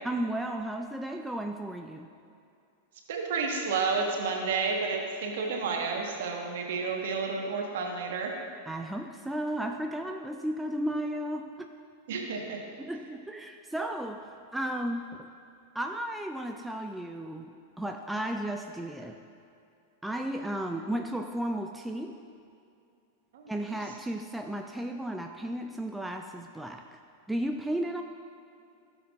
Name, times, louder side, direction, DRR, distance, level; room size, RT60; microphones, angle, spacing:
voice 1, 0.0-2.1 8.7-11.7 12.8-15.3 15.7-17.5 17.8-19.2 20.0-22.2 23.5-26.9 27.3-28.0, right 1 dB, 5° right, 4 dB, 0.4 m, -34 dB
voice 2, 3.1-8.3 12.1-12.6 23.3-23.8, right 4 dB, 55° right, 1 dB, 1.3 m, -31 dB
16.0 x 6.8 x 2.5 m, 2.5 s
figure-of-eight pair, 90°, 0 cm